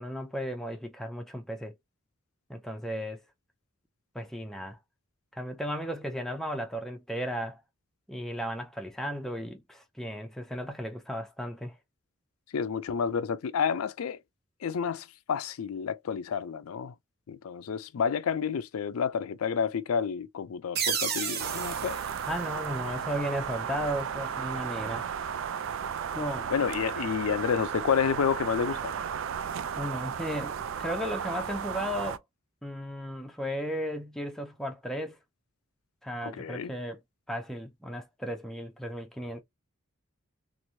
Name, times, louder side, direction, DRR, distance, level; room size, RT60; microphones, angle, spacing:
voice 1, 0.0-1.7 2.5-3.2 4.1-4.8 5.3-7.6 8.1-11.7 22.3-25.1 26.1-26.5 29.8-32.2 32.6-35.2 36.0-37.0 37.3-39.4, equal, ahead, 0.5 m, -35 dB
voice 2, 12.5-14.2 14.6-16.9 17.3-22.0 26.5-28.9 36.2-36.7, left 7 dB, 85° left, 0.4 m, -30 dB
sound 1, 20.8-23.3, right 7 dB, 45° right, 0.7 m, -33 dB
sound 2, 21.4-32.2, right 7 dB, 65° right, 0.3 m, -34 dB
3.1 x 2.5 x 2.7 m
head